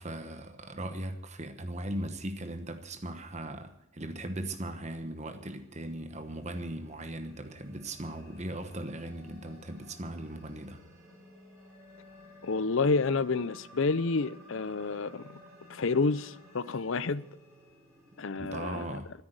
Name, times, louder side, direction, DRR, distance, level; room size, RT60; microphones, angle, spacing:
voice 1, 0.0-10.8 18.3-19.1, right 1 dB, 30° right, 1.1 m, -38 dB
sound 1, 5.4-18.3, left 1 dB, 10° right, 6.8 m, -55 dB
voice 2, 12.4-15.3 15.7-17.2 18.2-19.0, left 4 dB, 65° left, 0.6 m, -29 dB
13.5 x 10.0 x 8.0 m
head